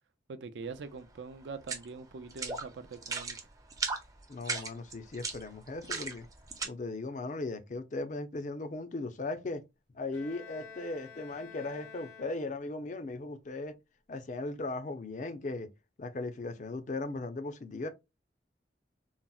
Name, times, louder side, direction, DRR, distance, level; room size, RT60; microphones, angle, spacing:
voice 1, 0.3-3.4, right 4 dB, 80° right, 0.4 m, -43 dB
sound 1, 1.6-1.9 2.3-2.6 2.9-3.4 3.7-4.0 4.4-6.7, right 4 dB, 20° right, 0.5 m, -35 dB
voice 2, 4.3-6.3 6.6-9.6 9.9-13.8 14.1-15.7 16.0-17.9, left 2 dB, 40° left, 0.4 m, -37 dB
Bowed string instrument, 10.1-12.8, left 6 dB, 85° left, 0.8 m, -50 dB
3.9 x 2.0 x 2.3 m
head